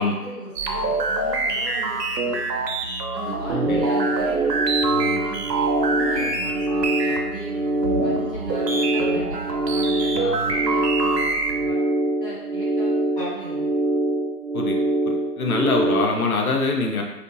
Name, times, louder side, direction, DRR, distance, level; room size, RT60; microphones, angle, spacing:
voice 1, 0.0-2.0 2.2-2.7 3.1-7.5 8.0-11.3 11.6-11.8 12.2-13.7, right 1 dB, 35° left, -9 dB, 0.9 m, -36 dB
sound 1, 0.6-11.7, right 3 dB, 85° right, 0.6 m, -26 dB
sound 2, 3.3-16.0, right 1 dB, 45° right, 0.4 m, -24 dB
voice 2, 15.1-17.0, left 3 dB, 65° left, 1 dB, 0.5 m, -23 dB
2.6 x 2.0 x 2.6 m, 1.1 s
figure-of-eight pair, 165°, 48 cm